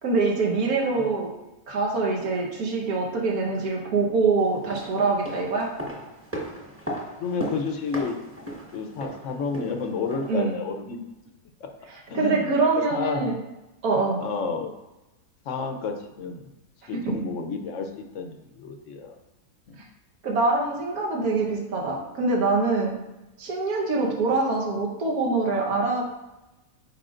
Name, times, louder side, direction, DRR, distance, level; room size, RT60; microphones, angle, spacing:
voice 1, 0.0-1.3 1.7-5.7 10.3-10.6 11.9-13.3 13.8-14.2 17.0-17.1 20.2-23.0 23.4-26.0, right 3 dB, 70° right, -1 dB, 1.6 m, -24 dB
sound 1, 4.5-10.5 10.7-10.8, equal, 10° right, 1.1 m, -37 dB
voice 2, 7.2-8.2 8.7-11.0 11.6-11.7 12.1-12.4 12.8-13.3 14.2-14.7 15.5-16.5 16.9-19.1 19.7-19.8, left 4 dB, 60° left, 5 dB, 1.0 m, -31 dB
9.2 x 5.2 x 2.5 m, 1.0 s
omnidirectional pair, 1.7 m